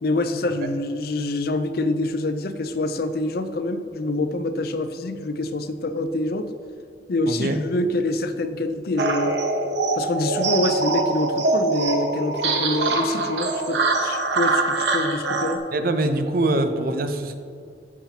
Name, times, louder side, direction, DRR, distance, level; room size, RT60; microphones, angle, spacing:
voice 1, 0.0-6.5 7.1-9.4 9.9-15.6, left 2 dB, 60° left, 10 dB, 0.5 m, -26 dB
voice 2, 7.3-7.6 15.7-17.4, right 2 dB, 55° right, 8 dB, 0.6 m, -23 dB
sound 1, 9.0-15.6, right 3 dB, 80° right, 0.9 m, -23 dB
12.5 x 7.3 x 2.9 m, 2.3 s
head